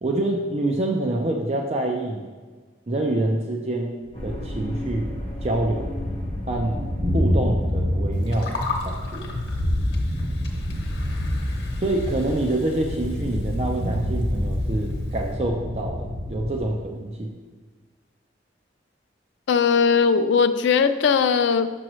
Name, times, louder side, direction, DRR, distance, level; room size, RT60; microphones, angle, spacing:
voice 1, 0.0-2.3 2.9-5.1 5.4-5.9 6.5-6.8 7.1-8.6 8.8-9.3 11.8-17.3, right 1 dB, 35° right, 1 dB, 0.5 m, -26 dB
sound 1, 4.1-8.9, equal, 30° left, 0.9 m, -37 dB
Thunder, 4.1-16.7, left 1 dB, 55° right, 1.8 m, -27 dB
Gurgling, 8.1-15.3, left 3 dB, 70° left, 1.0 m, -37 dB
voice 2, 19.5-21.7, left 6 dB, 90° left, 10 dB, 0.4 m, -19 dB
6.2 x 6.1 x 3.1 m, 1.4 s
head